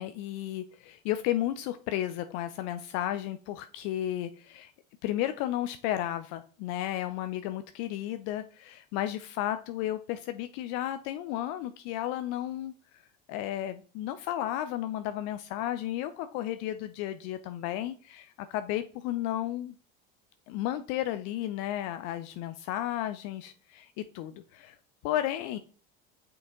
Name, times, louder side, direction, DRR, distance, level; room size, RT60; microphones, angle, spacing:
voice 1, 0.0-4.7 5.0-12.7 13.3-19.7 20.5-24.8 25.0-25.6, left 13 dB, 60° left, 10 dB, 0.6 m, -33 dB
6.1 x 4.7 x 3.7 m, 0.41 s
hypercardioid pair, 90°, 30 cm